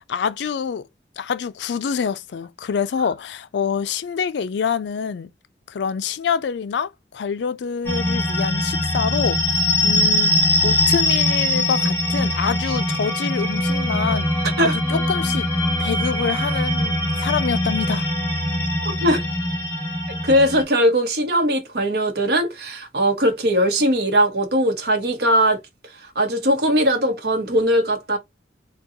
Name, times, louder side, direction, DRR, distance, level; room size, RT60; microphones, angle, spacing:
voice 1, 0.1-0.8 1.2-5.3 5.7-14.3 14.6-15.5 15.8-18.1, left 6 dB, 75° left, 0.4 m, -26 dB
sound 1, 7.9-20.6, left 1 dB, 15° left, 1.2 m, -22 dB
voice 2, 20.2-25.6 25.9-28.2, equal, 60° right, 0.9 m, -20 dB
3.7 x 2.2 x 2.7 m
head